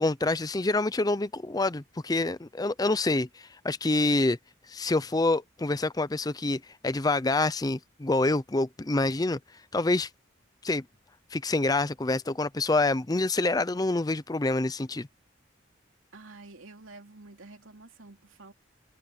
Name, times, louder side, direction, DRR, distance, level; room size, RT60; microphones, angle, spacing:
voice 1, 0.0-4.4 4.7-9.4 9.7-10.1 10.6-10.8 11.3-15.1, left 2 dB, 20° left, 0.5 m, -27 dB
voice 2, 16.1-18.5, right 3 dB, 90° right, 3.0 m, -49 dB
head